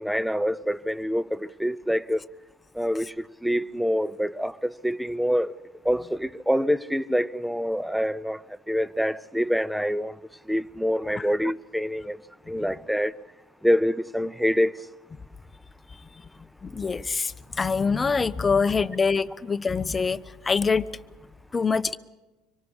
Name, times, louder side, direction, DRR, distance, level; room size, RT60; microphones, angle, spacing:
voice 1, 0.0-2.3 2.7-5.5 5.8-8.4 8.7-10.2 10.5-12.2 12.5-13.1 13.6-14.7, equal, ahead, 0.7 m, -26 dB
voice 2, 16.6-20.8 21.5-22.0, left 5 dB, 25° left, 0.9 m, -25 dB
25.5 x 25.0 x 4.9 m
hypercardioid pair, 70°, 0 cm